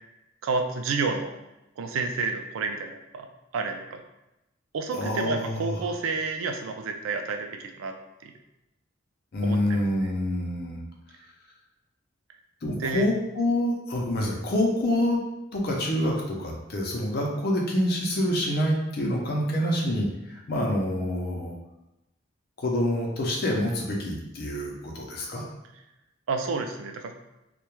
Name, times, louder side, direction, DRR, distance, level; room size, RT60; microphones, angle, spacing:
voice 1, 0.4-1.3 1.8-3.3 3.5-4.0 4.7-8.0 8.2-8.3 9.4-10.1 12.7-13.1 26.3-27.1, right 4 dB, 85° right, 5 dB, 0.3 m, -30 dB
voice 2, 4.9-5.8 9.3-10.8 12.6-15.2 15.5-21.6 22.6-25.4, left 1 dB, 50° left, -1 dB, 0.5 m, -27 dB
2.2 x 2.1 x 3.0 m, 0.93 s
head